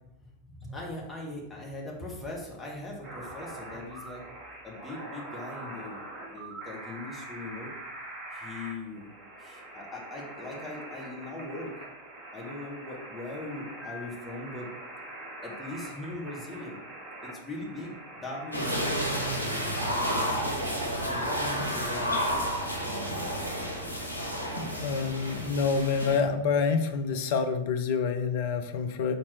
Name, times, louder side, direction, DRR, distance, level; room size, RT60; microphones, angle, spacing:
voice 1, 0.5-4.2 4.6-6.0 6.3-7.7 8.3-9.1 9.4-11.7 12.3-14.7 15.4-16.8 17.2-19.2 21.0-22.5 24.6-24.8, left 2 dB, 10° left, -3 dB, 1.9 m, -40 dB
sound 1, 3.0-19.7, right 1 dB, 40° right, 1.9 m, -43 dB
sound 2, 18.5-26.2, equal, 85° right, 1.3 m, -31 dB
sound 3, 20.1-26.2, equal, 5° right, 1.0 m, -48 dB
voice 2, 24.6-29.1, left 5 dB, 50° left, 7 dB, 0.8 m, -27 dB
6.7 x 4.2 x 4.5 m, 0.87 s
figure-of-eight pair, 90°, 0 cm